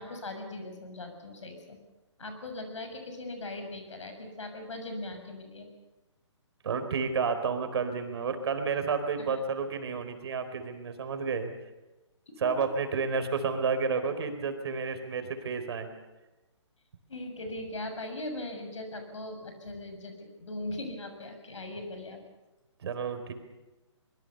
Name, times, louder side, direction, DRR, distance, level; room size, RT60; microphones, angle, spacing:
voice 1, 0.0-1.8 2.2-5.7 9.3-9.4 17.1-22.2, left 2 dB, 75° left, 6 dB, 6.9 m, -39 dB
voice 2, 6.6-11.5 12.4-15.9 22.8-23.3, right 5 dB, 55° right, 8 dB, 4.2 m, -31 dB
24.0 x 22.5 x 6.8 m, 1.1 s
hypercardioid pair, 145°, 16 cm